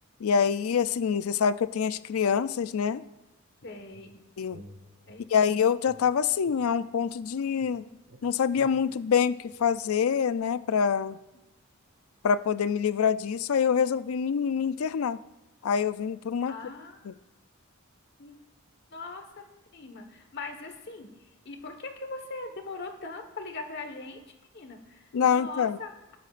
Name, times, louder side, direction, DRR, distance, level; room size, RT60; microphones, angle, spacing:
voice 1, 0.2-3.1 4.4-4.6 5.3-7.8 8.2-11.2 12.2-15.2 15.6-16.5 17.1-17.2 25.1-25.8, left 7 dB, 85° left, 15 dB, 0.4 m, -26 dB
voice 2, 3.6-4.2 5.1-5.6 7.8-7.9 16.5-17.0 18.2-18.3 18.9-19.4 19.7-24.2 24.5-26.2, left 3 dB, 55° left, 6 dB, 1.4 m, -41 dB
sound 1, 3.9-5.4 5.9-7.3 7.6-10.1, equal, 60° right, 1.1 m, -53 dB
19.5 x 10.5 x 2.5 m, 1.0 s
head